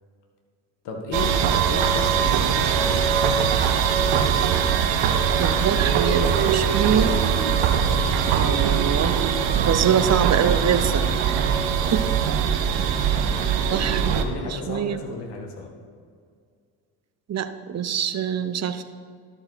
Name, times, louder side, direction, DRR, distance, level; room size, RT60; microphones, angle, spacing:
voice 1, 0.8-3.1 7.6-8.0 9.9-10.1 10.6-10.8 11.3-11.4 13.1-15.7, left 3 dB, 60° left, 2 dB, 1.9 m, -34 dB
sound 1, 1.1-14.2, right 7 dB, 65° right, 1.0 m, -21 dB
voice 2, 5.4-7.1 8.3-9.2 9.7-11.0 11.9-12.0 12.8-12.9 13.7-15.0 17.3-18.8, right 8 dB, 35° right, 11 dB, 0.8 m, -24 dB
12.0 x 6.7 x 4.3 m, 2.2 s
hypercardioid pair, 50°, 47 cm